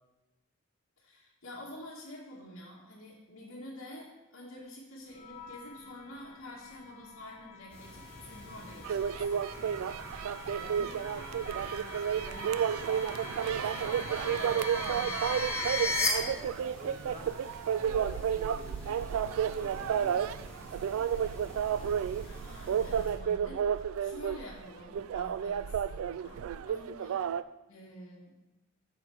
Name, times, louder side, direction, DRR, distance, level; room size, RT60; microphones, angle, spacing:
voice 1, 1.0-9.2 14.9-15.2 22.2-27.2 27.7-28.4, left 1 dB, 80° left, -8 dB, 1.5 m, -48 dB
sound 1, 5.1-16.1, left 3 dB, 30° left, 1.2 m, -39 dB
sound 2, 7.7-23.1, equal, 5° left, 3.2 m, -50 dB
sound 3, 8.8-27.4, right 8 dB, 90° right, 0.3 m, -31 dB
voice 2, 10.5-17.3 17.8-20.6 20.9-22.2 26.4-26.7 27.1-27.2, equal, 35° right, -2 dB, 1.7 m, -50 dB
7.9 x 6.3 x 4.5 m, 1.0 s
head